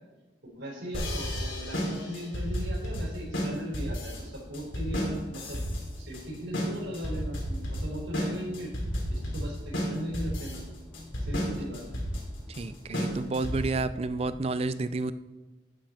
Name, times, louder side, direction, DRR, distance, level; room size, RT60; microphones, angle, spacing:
voice 1, 0.4-5.6 6.0-8.7 9.1-10.6 11.2-11.9, equal, 75° right, -3 dB, 4.1 m, -38 dB
sound 1, 0.9-13.8, equal, 85° left, 3.2 m, -32 dB
sound 2, 4.1-14.4, left 1 dB, 10° left, 1.6 m, -49 dB
voice 2, 12.5-15.1, right 3 dB, 30° right, 14 dB, 0.3 m, -30 dB
11.5 x 8.0 x 4.3 m, 1.2 s
head